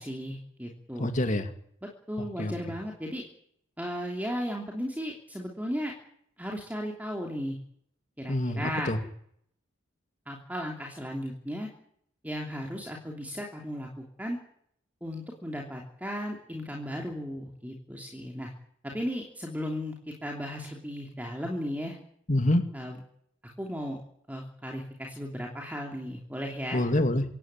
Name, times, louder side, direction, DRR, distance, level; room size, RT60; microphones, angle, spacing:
voice 1, 0.0-1.1 2.1-3.2 3.8-5.9 6.4-7.6 8.2-8.9 10.3-11.7 12.2-14.4 15.0-18.5 18.8-19.9 20.2-22.0 22.7-23.0 23.6-24.0 24.3-26.9, equal, 10° right, 0 dB, 3.1 m, -35 dB
voice 2, 1.0-1.5 2.4-2.5 8.3-9.0 22.3-22.6 26.7-27.2, left 1 dB, 40° left, 7 dB, 2.5 m, -26 dB
26.0 x 16.5 x 9.1 m, 0.68 s
head